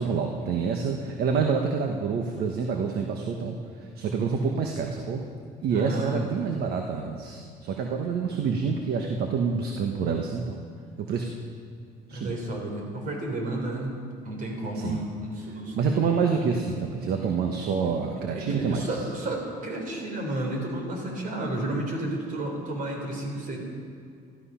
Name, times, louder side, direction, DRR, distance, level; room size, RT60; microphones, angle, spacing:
voice 1, 0.0-5.2 5.6-10.6 11.0-11.3 12.1-12.4 14.7-15.0 15.8-18.9, right 5 dB, 70° right, 3 dB, 1.2 m, -27 dB
voice 2, 4.1-4.5 5.7-6.7 12.1-14.0 14.2-16.0 18.2-23.6, right 1 dB, 55° right, 1 dB, 3.7 m, -32 dB
14.0 x 12.5 x 5.7 m, 2.3 s
cardioid pair, 110°, 17 cm